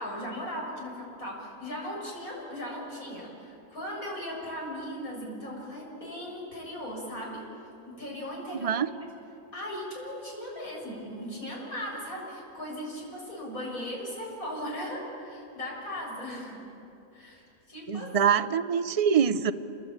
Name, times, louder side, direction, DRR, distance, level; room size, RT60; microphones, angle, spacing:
voice 1, 0.0-7.4 7.9-9.1 9.5-16.6 17.1-18.1, equal, 75° left, -3 dB, 7.4 m, -38 dB
voice 2, 8.5-8.9 17.9-19.5, right 7 dB, 40° right, 12 dB, 0.5 m, -24 dB
28.0 x 21.5 x 8.8 m, 3.0 s
omnidirectional pair, 1.5 m